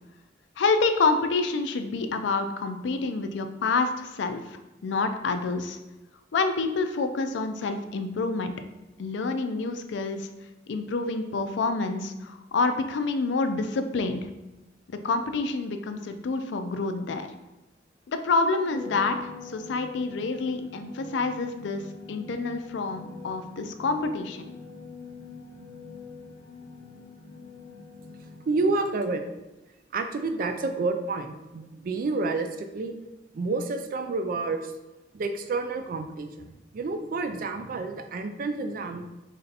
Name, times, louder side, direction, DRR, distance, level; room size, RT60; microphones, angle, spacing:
voice 1, 0.6-5.8 6.3-8.5 9.0-10.3 10.7-14.3 14.9-17.3 18.1-21.8 22.1-24.5, left 3 dB, 70° left, 8 dB, 0.4 m, -28 dB
sound 1, 18.7-28.6, left 5 dB, 25° left, 0.9 m, -44 dB
voice 2, 28.4-29.5 29.9-32.9 33.3-34.7 35.1-39.1, right 3 dB, 50° right, 7 dB, 0.3 m, -29 dB
3.3 x 2.7 x 4.0 m, 1.0 s
head